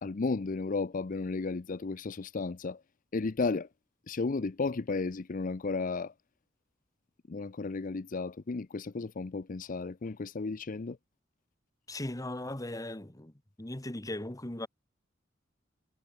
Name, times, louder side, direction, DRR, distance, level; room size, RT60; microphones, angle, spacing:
voice 1, 0.0-2.8 3.1-3.7 4.1-6.1 7.3-11.0, left 3 dB, 45° left, 0.6 m, -33 dB
voice 2, 11.9-13.3 13.6-14.7, left 1 dB, 20° left, 1.4 m, -38 dB
head